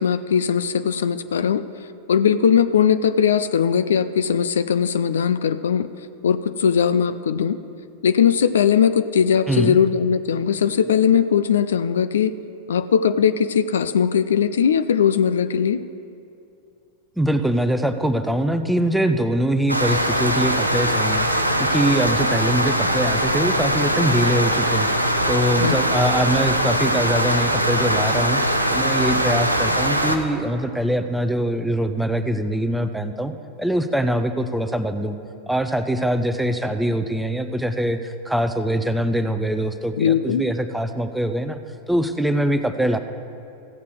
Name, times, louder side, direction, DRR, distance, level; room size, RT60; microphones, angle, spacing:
voice 1, 0.0-1.6 2.1-5.9 6.2-7.6 8.0-12.3 12.7-15.8 25.6-25.8 40.0-40.4, left 7 dB, 65° left, 13 dB, 0.3 m, -19 dB
voice 2, 17.2-28.4 28.7-33.3 33.6-35.2 35.5-41.6 41.9-43.0, right 1 dB, 5° right, 9 dB, 0.6 m, -23 dB
sound 1, 19.7-30.2, equal, 90° right, 0.7 m, -21 dB
15.0 x 8.3 x 4.7 m, 2.6 s
figure-of-eight pair, 90°, 0 cm